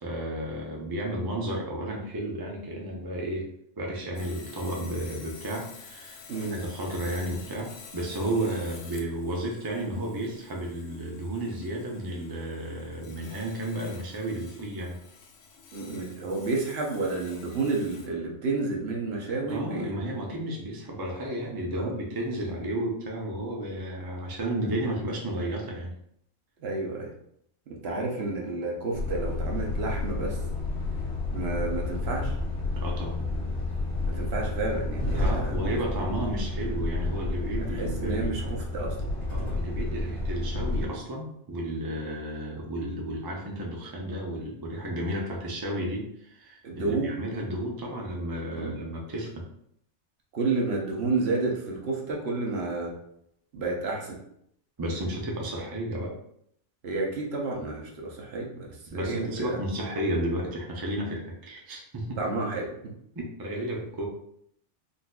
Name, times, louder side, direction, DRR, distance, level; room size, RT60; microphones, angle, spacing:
voice 1, 0.0-3.5 3.8-6.2 6.5-15.0 19.5-25.9 32.8-33.3 35.1-38.5 39.3-49.4 54.8-56.1 58.9-62.2 63.4-64.1, right 1 dB, 30° right, -1 dB, 0.4 m, -32 dB
Sawing, 4.1-18.1, left 5 dB, 90° left, 0.9 m, -49 dB
voice 2, 15.7-20.0 21.8-21.9 26.6-27.1 27.7-30.4 31.3-32.4 34.0-35.7 37.7-38.9 46.6-47.1 48.6-48.8 50.3-52.9 53.5-54.2 56.8-59.6 62.2-62.9, right 3 dB, 65° right, -1 dB, 0.9 m, -30 dB
Truck, 28.9-40.9, left 2 dB, 70° left, 1.3 m, -30 dB
3.9 x 2.5 x 2.3 m, 0.71 s
omnidirectional pair, 1.2 m